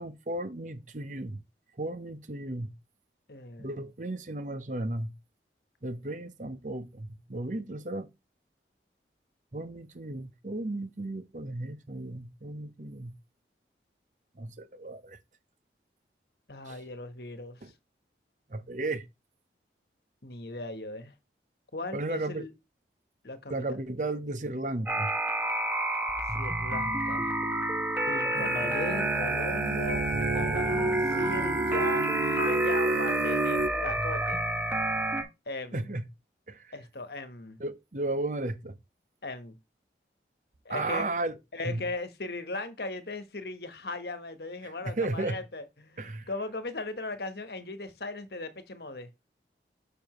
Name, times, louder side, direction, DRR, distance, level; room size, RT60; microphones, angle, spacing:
voice 1, 0.0-1.4 1.8-2.7 3.6-5.1 5.8-8.1 9.5-13.1 14.4-15.2 16.7-16.8 17.6-17.7 18.5-19.0 21.9-22.5 23.5-25.1 35.7-36.1 36.5-36.7 37.6-38.8 40.7-41.4 41.6-41.8 44.6-45.4 46.0-46.3, right 2 dB, 45° right, 0.8 m, -34 dB
voice 2, 3.3-3.9 16.5-17.6 20.2-21.1 21.7-22.5 23.2-23.6 24.0-24.1 26.3-27.4 28.1-34.4 35.5-35.9 36.7-37.6 39.2-39.6 40.6-41.1 41.5-49.1, left 2 dB, 65° left, 1.3 m, -38 dB
sound 1, 24.9-35.2, right 1 dB, 10° right, 1.3 m, -29 dB
sound 2, 28.3-33.7, right 2 dB, 85° right, 0.7 m, -30 dB
7.0 x 6.8 x 3.1 m
head